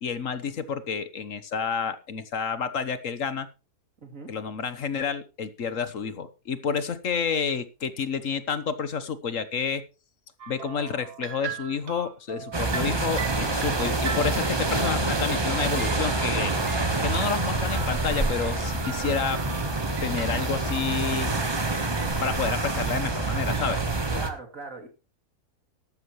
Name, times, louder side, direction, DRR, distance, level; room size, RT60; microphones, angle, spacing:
voice 1, 0.0-3.5 4.3-9.8 10.5-16.6 17.0-19.4 20.0-21.3 22.2-23.8, left 6 dB, 55° left, 13 dB, 1.4 m, -29 dB
voice 2, 4.0-4.3 13.3-13.7 24.1-24.9, right 3 dB, 55° right, 5 dB, 3.1 m, -40 dB
sound 1, 10.4-14.8 15.7-23.7, right 7 dB, 80° right, 1.9 m, -41 dB
sound 2, 12.5-24.3, right 2 dB, 20° right, 1.1 m, -27 dB
13.5 x 12.0 x 3.1 m, 0.32 s
omnidirectional pair, 1.7 m